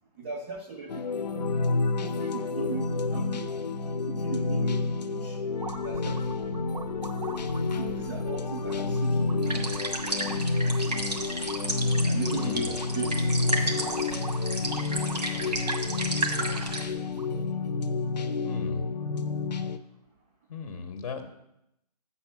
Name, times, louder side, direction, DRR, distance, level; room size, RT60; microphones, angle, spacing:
voice 1, 0.2-1.3 2.0-3.7 4.1-5.4 5.8-6.9 7.7-10.0 12.1-13.9, right 4 dB, 15° right, 1 dB, 0.3 m, -38 dB
sound 1, 0.9-19.8, left 3 dB, 85° left, 0.6 m, -29 dB
sound 2, 5.6-17.4, right 5 dB, 65° right, 0.6 m, -44 dB
sound 3, 9.4-16.8, right 2 dB, 85° right, 1.8 m, -33 dB
voice 2, 12.3-12.7 18.4-18.8 20.5-21.3, left 5 dB, 50° left, 6 dB, 0.7 m, -36 dB
7.2 x 4.2 x 6.0 m, 0.83 s
figure-of-eight pair, 145°, 21 cm